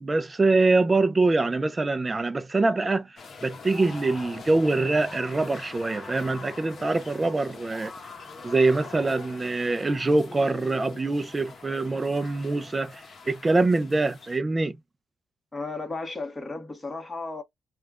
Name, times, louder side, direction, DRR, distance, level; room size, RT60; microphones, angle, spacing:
voice 1, 0.0-7.9 8.4-14.8, right 3 dB, 25° right, 0.5 m, -24 dB
sound 1, 3.2-14.4, left 4 dB, 45° left, 1.0 m, -43 dB
voice 2, 15.5-17.4, left 3 dB, 15° left, 1.4 m, -34 dB
3.3 x 2.4 x 3.6 m
cardioid pair, 90°, 0 cm